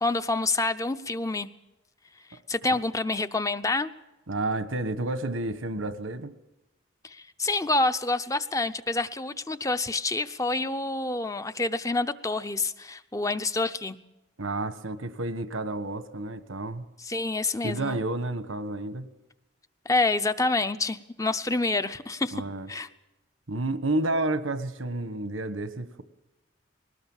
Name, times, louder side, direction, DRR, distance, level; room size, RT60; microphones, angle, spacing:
voice 1, 0.0-1.5 2.3-3.9 7.0-14.0 17.0-18.0 19.9-22.3 22.7-22.9, left 2 dB, 15° left, 10 dB, 0.7 m, -27 dB
voice 2, 4.3-6.3 14.4-16.9 17.6-19.1 22.3-22.7 23.5-26.0, right 2 dB, 90° right, 11 dB, 1.4 m, -30 dB
21.0 x 18.5 x 7.3 m, 0.98 s
head